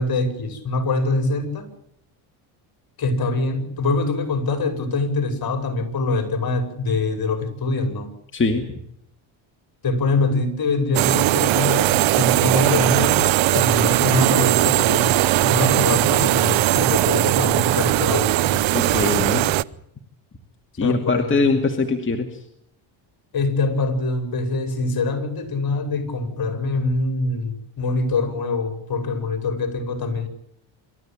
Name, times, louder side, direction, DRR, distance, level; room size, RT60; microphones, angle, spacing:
voice 1, 0.0-1.7 3.0-8.1 9.8-18.6 20.8-21.4 23.3-30.3, left 3 dB, 45° left, 7 dB, 5.8 m, -24 dB
voice 2, 8.3-8.7 18.7-19.5 20.8-22.4, left 4 dB, 25° left, 4 dB, 2.4 m, -22 dB
sound 1, 10.9-19.6, right 16 dB, 65° right, 0.8 m, -19 dB
26.5 x 13.5 x 9.0 m, 0.75 s
cardioid pair, 100°, 49 cm